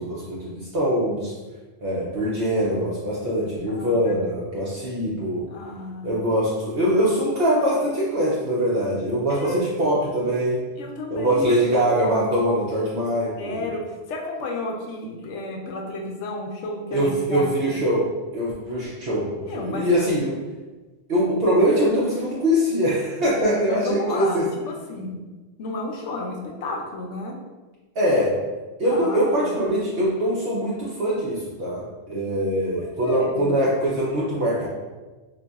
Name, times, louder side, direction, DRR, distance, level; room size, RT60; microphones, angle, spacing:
voice 1, 0.0-1.3 1.8-5.5 6.0-10.6 11.1-13.7 16.9-18.0 18.3-20.3 21.1-24.5 28.0-28.3 28.8-34.7, equal, 60° right, -6 dB, 0.8 m, -23 dB
voice 2, 3.7-4.2 5.5-6.2 9.3-9.7 10.8-11.6 13.4-17.9 19.4-19.9 23.7-25.2 25.6-27.3 28.9-29.5 32.8-33.6, left 2 dB, 80° left, 0 dB, 0.9 m, -32 dB
3.9 x 2.6 x 2.3 m, 1.3 s
omnidirectional pair, 1.2 m